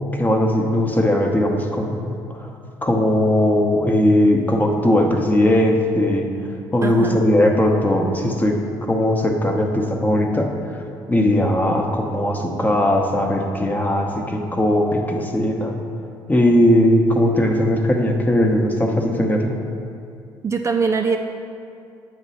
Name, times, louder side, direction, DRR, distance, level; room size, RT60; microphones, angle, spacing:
voice 1, 0.1-2.5 2.8-6.3 6.7-10.5 11.1-15.8 16.3-19.6, left 1 dB, 15° left, 2 dB, 0.8 m, -19 dB
voice 2, 6.8-7.3 20.4-21.2, right 5 dB, 30° right, 4 dB, 0.4 m, -22 dB
7.1 x 3.2 x 5.5 m, 2.5 s
supercardioid pair, 65°, 10 cm